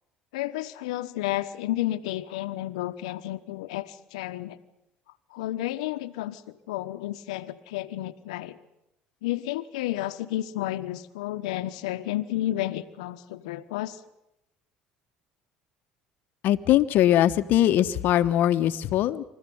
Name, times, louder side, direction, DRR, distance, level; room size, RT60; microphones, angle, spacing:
voice 1, 0.3-4.6 5.3-8.6 9.2-14.0, left 14 dB, 85° left, 10 dB, 1.2 m, -31 dB
voice 2, 16.4-19.2, left 12 dB, 65° left, 11 dB, 1.2 m, -21 dB
28.0 x 14.5 x 9.5 m, 0.87 s
hypercardioid pair, 70°, 3 cm